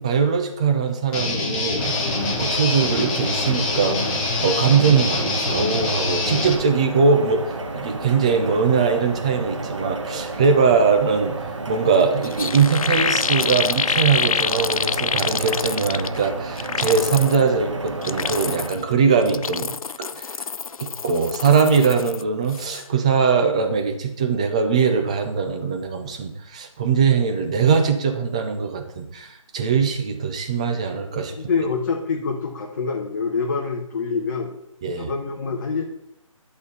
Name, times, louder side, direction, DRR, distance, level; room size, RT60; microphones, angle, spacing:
voice 1, 0.0-1.9 2.4-7.4 7.8-11.4 11.7-20.4 20.8-31.3 34.8-35.1, right 5 dB, 10° right, 5 dB, 0.4 m, -21 dB
Guitar, 1.1-6.5, left 3 dB, 15° left, 0.9 m, -25 dB
sound 1, 1.8-18.7, right 2 dB, 55° right, 1.5 m, -31 dB
sound 2, 11.9-12.0 12.2-16.2 16.6-17.4 17.9-18.8 19.2-22.2 22.5-22.8, left 6 dB, 85° left, 0.4 m, -26 dB
voice 2, 31.3-34.5 35.0-35.8, left 5 dB, 35° left, 0 dB, 1.1 m, -26 dB
11.0 x 4.3 x 6.8 m, 0.79 s
figure-of-eight pair, 160°, 18 cm